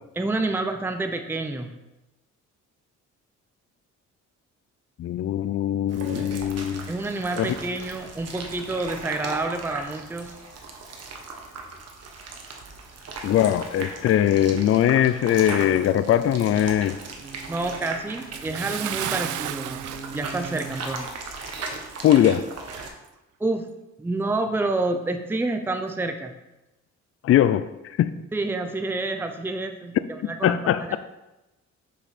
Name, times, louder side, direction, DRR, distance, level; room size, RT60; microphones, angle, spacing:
voice 1, 0.2-1.7 6.9-10.4 17.5-19.8 20.1-21.1 23.4-23.7 24.0-26.3 28.3-31.0, right 2 dB, 5° right, 6 dB, 0.6 m, -28 dB
voice 2, 5.0-6.9 7.4-7.5 13.2-17.0 22.0-22.5 27.2-27.7 28.0-28.1 30.4-31.0, left 11 dB, 50° left, 13 dB, 0.4 m, -21 dB
sound 1, 5.9-22.9, right 3 dB, 55° right, 1.3 m, -38 dB
sound 2, 15.4-16.8 17.1-20.8, right 5 dB, 40° right, 0.9 m, -41 dB
Bathtub (filling or washing) / Splash splatter, 18.3-21.2 21.5-21.7 22.2-22.3, right 12 dB, 80° right, 0.5 m, -34 dB
6.5 x 5.6 x 4.1 m, 1.0 s
cardioid pair, 90°, 30 cm